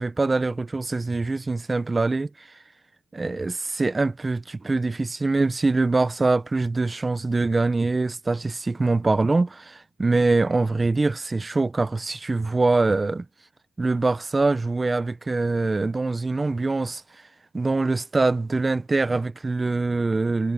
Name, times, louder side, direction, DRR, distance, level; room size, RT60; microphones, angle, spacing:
voice 1, 0.0-2.5 3.1-13.3 13.8-17.0 17.5-20.5, right 3 dB, 20° right, 0.8 m, -24 dB
cardioid pair, 90°, 0 cm